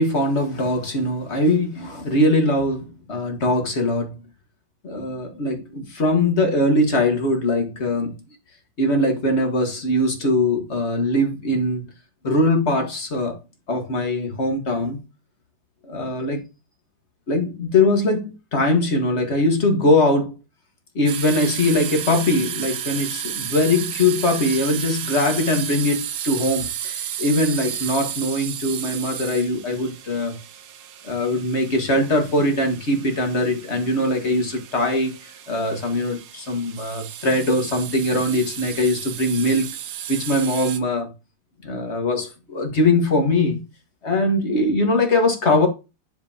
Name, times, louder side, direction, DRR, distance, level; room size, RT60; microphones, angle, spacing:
voice 1, 0.0-4.2 4.8-8.1 8.8-11.9 12.2-13.4 13.7-15.0 15.9-16.4 17.3-20.4 21.0-30.4 31.0-39.7 40.1-41.1 41.6-43.6 44.0-45.7, left 1 dB, 30° left, 1.9 m, -21 dB
sound 1, 21.1-40.8, right 10 dB, 75° right, 1.6 m, -33 dB
10.0 x 5.2 x 2.9 m
omnidirectional pair, 2.4 m